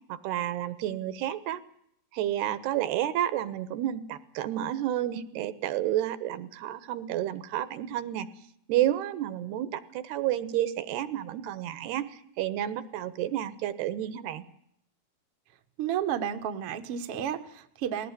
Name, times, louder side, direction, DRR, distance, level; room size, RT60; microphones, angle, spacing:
voice 1, 0.1-1.6 2.1-8.3 8.7-14.4, right 12 dB, 75° right, 14 dB, 3.1 m, -30 dB
voice 2, 15.8-18.1, right 9 dB, 60° right, 7 dB, 1.5 m, -32 dB
20.5 x 18.0 x 9.7 m, 0.70 s
omnidirectional pair, 4.8 m